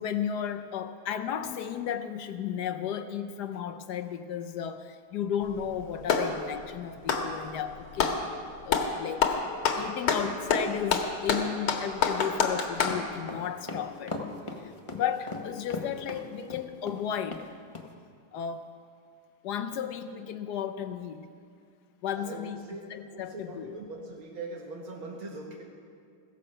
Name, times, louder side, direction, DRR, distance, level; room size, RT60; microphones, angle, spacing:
voice 1, 0.0-8.2 8.7-9.4 9.7-14.2 14.6-17.4 18.3-18.7 19.4-21.3 22.0-22.6 22.9-23.8, left 8 dB, 70° left, 8 dB, 1.0 m, -34 dB
Clapping, 5.4-6.4 7.0-8.2 8.7-8.9 9.2-13.0, left 6 dB, 85° left, 2.1 m, -26 dB
sound 1, 12.8-17.0 17.3-17.4 17.7-17.9, left 3 dB, 35° left, 0.5 m, -38 dB
voice 2, 22.1-22.8 23.1-25.6, right 2 dB, 75° right, -1 dB, 2.3 m, -41 dB
16.0 x 14.0 x 5.5 m, 2.2 s
omnidirectional pair, 2.3 m